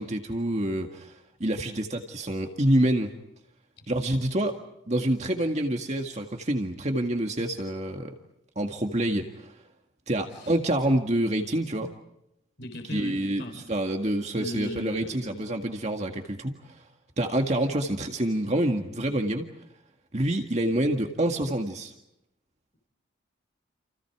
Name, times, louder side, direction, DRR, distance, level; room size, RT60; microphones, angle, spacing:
voice 1, 0.0-3.1 3.9-4.6 4.9-8.1 8.6-9.5 10.1-11.9 12.9-16.8 17.2-19.5 20.1-21.9, right 1 dB, 35° right, 4 dB, 1.9 m, -27 dB
voice 2, 12.6-13.7 14.3-15.4 17.8-17.9, left 1 dB, 60° left, 5 dB, 3.9 m, -38 dB
29.5 x 29.0 x 4.9 m, 0.81 s
head